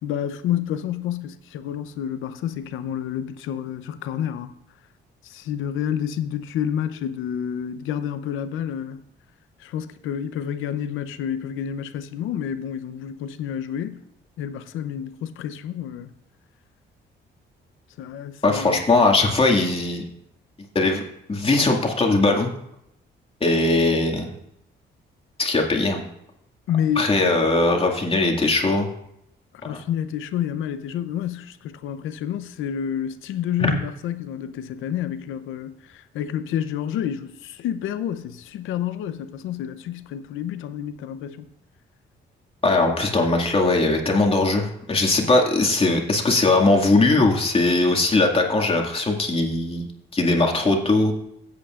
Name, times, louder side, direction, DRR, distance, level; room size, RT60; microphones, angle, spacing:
voice 1, 0.0-4.5 5.2-9.0 9.6-14.0 14.4-16.1 18.0-18.8 26.7-27.4 29.6-41.5, left 9 dB, 85° left, 0.7 m, -29 dB
voice 2, 18.4-20.0 20.7-21.0 21.3-22.5 23.4-24.3 25.4-26.1 27.0-28.9 29.7-29.8 33.6-33.7 42.6-49.9 50.1-51.1, left 2 dB, 30° left, 2.0 m, -20 dB
16.0 x 8.4 x 2.5 m
cardioid pair, 90°, 20 cm